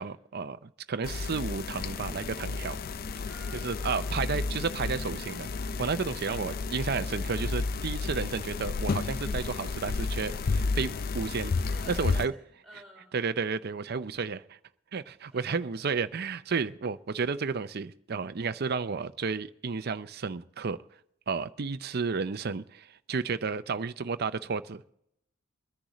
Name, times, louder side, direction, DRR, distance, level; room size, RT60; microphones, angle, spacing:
voice 1, 0.0-2.8 3.5-11.5 11.9-12.3 13.1-14.6 14.9-20.8 21.3-24.8, right 5 dB, 55° right, 0.6 m, -32 dB
sound 1, 1.0-12.3, left 4 dB, 50° left, 0.4 m, -32 dB
voice 2, 3.2-4.3 6.2-6.9 11.7-13.2 15.3-15.9, right 1 dB, ahead, 4.6 m, -53 dB
23.5 x 10.5 x 3.1 m
head